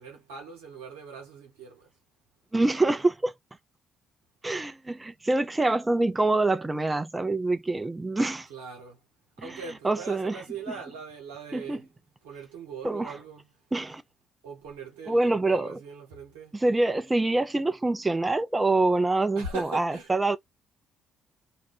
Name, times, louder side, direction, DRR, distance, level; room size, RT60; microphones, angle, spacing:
voice 1, 0.0-1.9 8.5-9.0 9.4-11.8 12.2-13.4 14.4-16.5 19.3-20.1, right 4 dB, 80° right, 1.1 m, -41 dB
voice 2, 2.5-3.3 4.4-8.5 9.4-10.4 10.7-10.8 11.5-11.8 12.8-13.2 13.7-14.0 15.1-15.8 16.5-20.4, right 2 dB, 20° right, 0.6 m, -25 dB
2.4 x 2.2 x 3.7 m
hypercardioid pair, 45°, 0 cm